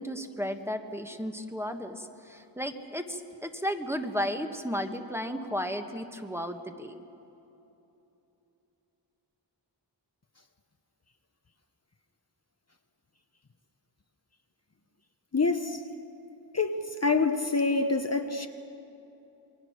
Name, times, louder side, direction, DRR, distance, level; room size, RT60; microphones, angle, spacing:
voice 1, 0.0-7.0, equal, 5° right, 5 dB, 1.4 m, -34 dB
voice 2, 15.3-15.9 16.5-18.5, left 3 dB, 35° left, 6 dB, 1.0 m, -26 dB
28.0 x 22.5 x 6.6 m, 3.0 s
wide cardioid pair, 90°, 43 cm